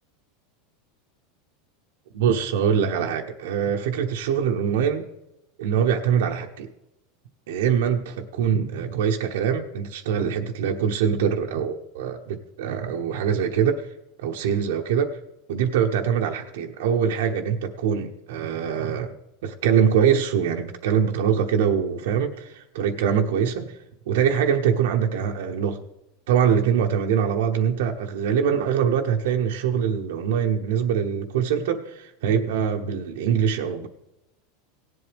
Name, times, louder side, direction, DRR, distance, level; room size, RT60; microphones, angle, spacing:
voice 1, 2.1-5.1 5.6-6.7 7.5-13.9 14.2-15.2 15.5-19.1 19.4-23.8 24.1-25.8 26.3-33.9, right 8 dB, 75° right, 3 dB, 0.9 m, -23 dB
17.5 x 7.8 x 3.5 m, 0.88 s
supercardioid pair, 160°, 0 cm